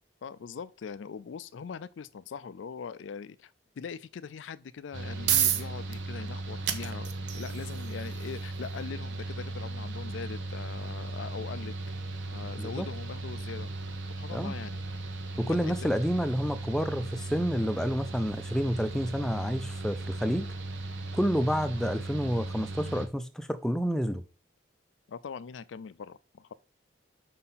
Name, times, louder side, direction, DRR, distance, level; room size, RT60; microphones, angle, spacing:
voice 1, 0.2-11.7 12.3-14.8 15.5-15.9 25.1-26.5, left 6 dB, 85° left, 0.4 m, -42 dB
sound 1, 4.8-19.7, right 10 dB, 65° right, 0.7 m, -37 dB
Mechanical fan, 4.9-23.1, right 2 dB, 85° right, 1.1 m, -37 dB
voice 2, 15.4-20.5 21.1-24.2, equal, 5° left, 0.5 m, -29 dB
5.5 x 4.2 x 5.6 m
head